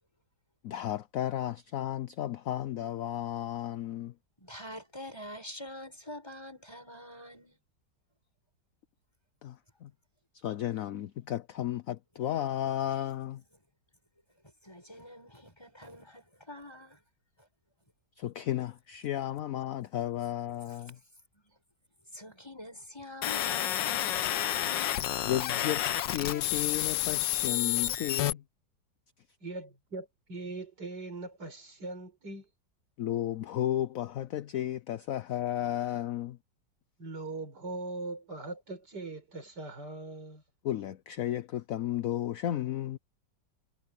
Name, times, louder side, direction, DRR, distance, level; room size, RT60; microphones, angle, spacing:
voice 1, 0.6-4.1 9.4-9.5 9.8-9.9 10.4-13.4 18.2-21.0 25.2-25.8 26.1-28.4 33.0-36.4 40.6-43.0, left 12 dB, 65° left, 0.9 m, -33 dB
voice 2, 4.4-7.6 14.6-17.0 20.7-20.9 21.3-21.5 22.1-24.5, left 1 dB, 15° left, 7.4 m, -46 dB
sound 1, 23.2-28.3, left 12 dB, 90° left, 1.5 m, -30 dB
voice 3, 29.4-32.5 37.0-40.4, right 2 dB, 65° right, 5.7 m, -40 dB
omnidirectional pair, 1.9 m